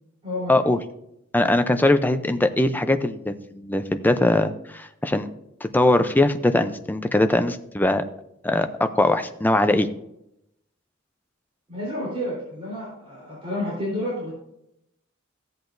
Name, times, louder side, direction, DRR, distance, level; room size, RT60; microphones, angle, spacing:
voice 1, 0.2-0.6 11.7-14.3, left 1 dB, 30° right, -7 dB, 3.8 m, -30 dB
voice 2, 1.3-5.3 5.6-8.0 8.4-9.9, left 1 dB, 10° left, 9 dB, 0.5 m, -21 dB
14.0 x 8.0 x 2.6 m, 0.81 s
head